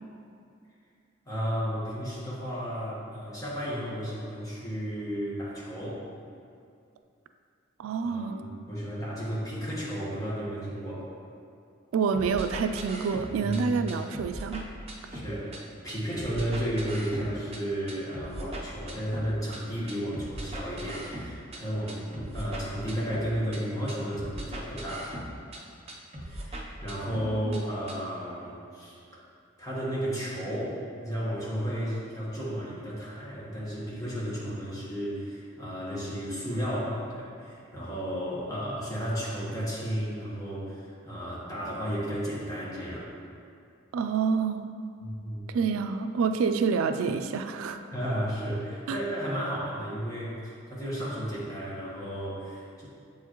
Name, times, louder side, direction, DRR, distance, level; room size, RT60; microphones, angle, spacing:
voice 1, 1.2-6.0 8.0-11.1 13.4-13.7 15.1-25.2 26.2-29.0 29.6-43.1 45.0-45.5 47.9-52.9, equal, 15° left, -7 dB, 1.3 m, -33 dB
voice 2, 7.8-8.4 11.9-14.6 27.2-27.6 43.9-44.7 45.5-47.8 48.9-49.0, right 5 dB, 85° right, 8 dB, 0.3 m, -28 dB
sound 1, 12.1-13.6 13.9-15.6 15.9-17.6 17.9-19.6 19.9-21.6 21.9-23.6 23.9-25.6 25.9-27.6 27.9-28.0, right 1 dB, 30° right, 0.6 m, -39 dB
7.5 x 4.6 x 3.0 m, 2.4 s
head